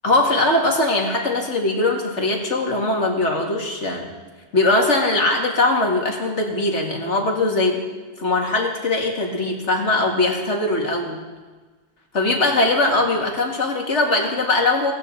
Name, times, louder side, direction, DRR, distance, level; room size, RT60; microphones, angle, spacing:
voice 1, 0.0-4.1 4.5-7.8 8.2-11.2 12.1-14.9, left 2 dB, 80° left, 0 dB, 2.5 m, -20 dB
18.0 x 16.5 x 4.0 m, 1.3 s
omnidirectional pair, 1.2 m